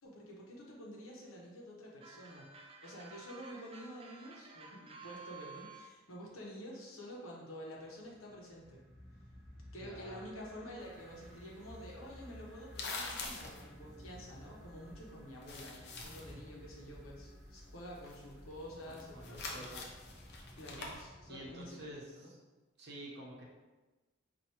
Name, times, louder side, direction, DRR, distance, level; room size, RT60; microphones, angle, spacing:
voice 1, 0.0-8.8 9.7-19.8 20.6-22.3, equal, 80° left, -3 dB, 0.9 m, -49 dB
sound 1, 2.0-5.9, right 4 dB, 30° right, 0.3 m, -53 dB
sound 2, 7.8-22.0, equal, 5° right, 0.7 m, -55 dB
voice 2, 9.8-10.3 18.8-19.8 20.8-20.9 21.3-22.4 22.8-23.4, equal, 55° right, -3 dB, 0.8 m, -49 dB
sound 3, 10.8-15.0 15.3-16.4 16.7-21.0, left 3 dB, 55° left, 0.6 m, -46 dB
4.6 x 2.6 x 2.8 m, 1.2 s
head